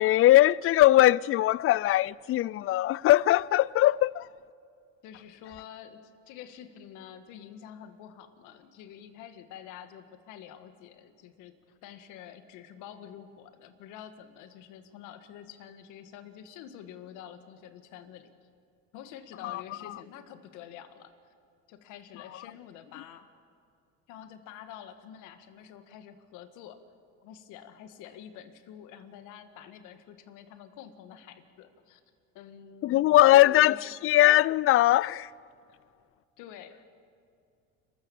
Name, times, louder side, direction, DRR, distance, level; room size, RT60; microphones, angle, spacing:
voice 1, 0.0-4.3 19.4-19.6 32.8-35.3, left 15 dB, 45° left, 0.4 m, -21 dB
voice 2, 5.0-18.3 18.9-21.1 21.7-23.3 24.1-26.8 27.2-32.0 32.3-33.2 33.5-33.9 36.4-36.9, left 9 dB, 70° left, 1.9 m, -48 dB
30.0 x 14.0 x 7.2 m
supercardioid pair, 90°, 31 cm